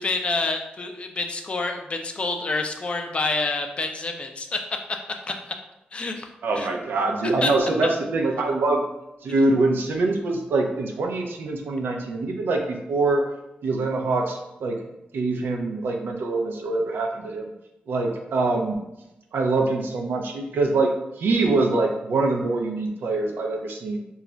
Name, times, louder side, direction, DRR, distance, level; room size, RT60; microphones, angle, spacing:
voice 1, 0.0-4.6 5.3-5.4 5.9-6.3 6.5-6.7 7.4-7.5, left 3 dB, 35° left, 4 dB, 0.3 m, -27 dB
voice 2, 6.4-8.9 9.2-13.2 13.6-14.8 15.1-17.5 17.9-18.8 19.3-24.0, right 3 dB, 85° right, 2 dB, 0.4 m, -24 dB
2.3 x 2.1 x 3.7 m, 0.93 s
wide cardioid pair, 140°, 3 cm